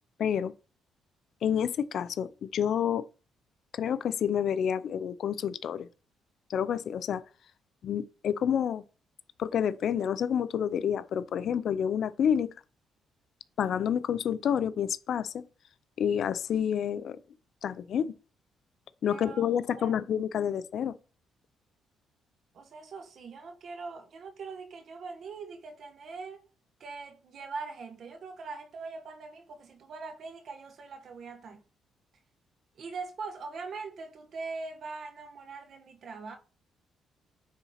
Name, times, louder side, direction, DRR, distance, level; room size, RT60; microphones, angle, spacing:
voice 1, 0.2-0.5 1.4-3.1 3.8-5.9 6.5-7.2 7.8-8.8 9.4-12.5 13.6-15.4 16.0-17.2 17.6-18.1 19.0-20.9, left 8 dB, 65° left, 0.5 m, -29 dB
voice 2, 19.1-20.0 22.5-26.4 26.8-31.6 32.7-36.4, right 4 dB, 60° right, 1.3 m, -42 dB
9.5 x 4.0 x 4.3 m
cardioid pair, 90°, 0 cm